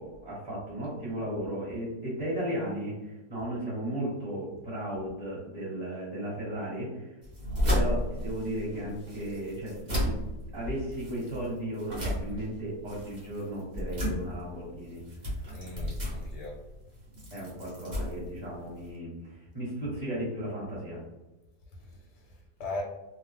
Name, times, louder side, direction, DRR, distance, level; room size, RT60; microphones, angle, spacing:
voice 1, 0.0-7.1 7.7-10.2 10.5-15.0 17.3-21.0, right 1 dB, 20° right, -8 dB, 1.2 m, -35 dB
sound 1, 7.2-18.9, left 1 dB, 35° right, 0.8 m, -34 dB
voice 2, 15.5-16.6 21.7-22.8, left 2 dB, 85° left, -1 dB, 1.2 m, -39 dB
2.8 x 2.0 x 3.2 m, 1.1 s
omnidirectional pair, 1.7 m